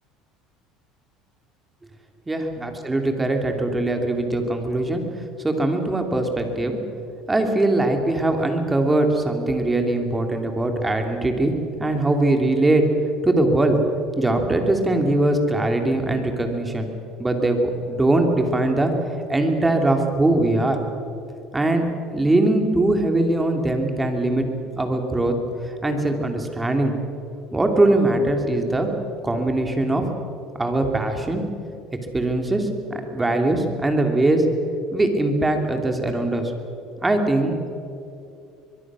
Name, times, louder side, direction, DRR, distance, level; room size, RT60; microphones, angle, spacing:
voice 1, 2.3-5.0 5.4-6.8 7.3-11.5 11.8-12.8 13.2-13.8 14.2-16.9 17.2-18.9 19.3-20.8 21.5-21.8 22.1-24.5 24.8-25.4 25.7-26.9 27.5-28.9 29.2-30.0 30.6-31.4 32.1-32.7 33.1-34.4 34.9-36.5 37.0-37.6, right 2 dB, 10° right, 4 dB, 3.0 m, -21 dB
23.5 x 22.0 x 6.4 m, 2.6 s
cardioid pair, 120°, 0 cm